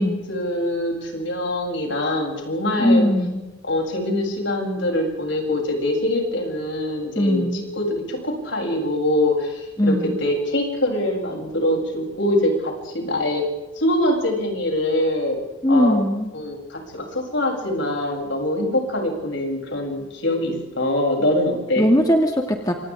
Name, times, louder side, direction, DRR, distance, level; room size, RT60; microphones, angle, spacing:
voice 1, 0.0-3.1 3.7-13.4 13.7-15.4 15.7-16.0 16.3-21.9, left 1 dB, 70° left, 0 dB, 7.9 m, -24 dB
voice 2, 2.8-3.4 7.2-7.6 9.8-10.2 15.6-16.3 21.8-22.7, equal, 20° left, 2 dB, 2.1 m, -19 dB
28.0 x 27.0 x 3.8 m, 1.0 s
head